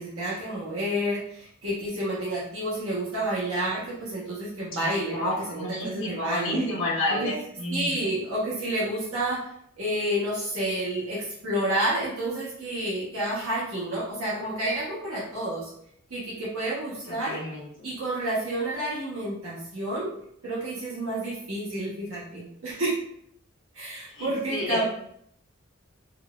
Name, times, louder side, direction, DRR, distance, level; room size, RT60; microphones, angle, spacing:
voice 1, 0.0-6.6 7.2-7.3 7.7-9.5 9.8-15.7 16.1-17.4 17.8-20.1 20.4-23.0 23.7-24.8, right 1 dB, 70° right, -7 dB, 0.9 m, -30 dB
voice 2, 4.8-8.2 17.1-17.9 24.1-24.8, left 1 dB, 60° left, -9 dB, 1.0 m, -31 dB
3.8 x 2.3 x 2.2 m, 0.68 s
head